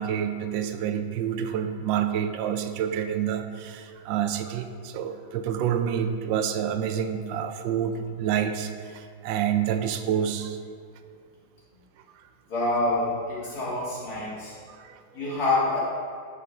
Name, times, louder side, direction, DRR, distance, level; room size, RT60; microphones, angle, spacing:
voice 1, 0.0-10.6 14.7-15.0, right 9 dB, 80° right, 8 dB, 1.3 m, -28 dB
voice 2, 12.5-14.5 15.1-15.8, left 2 dB, 55° left, -8 dB, 2.8 m, -26 dB
10.0 x 5.5 x 3.5 m, 2.2 s
omnidirectional pair, 2.0 m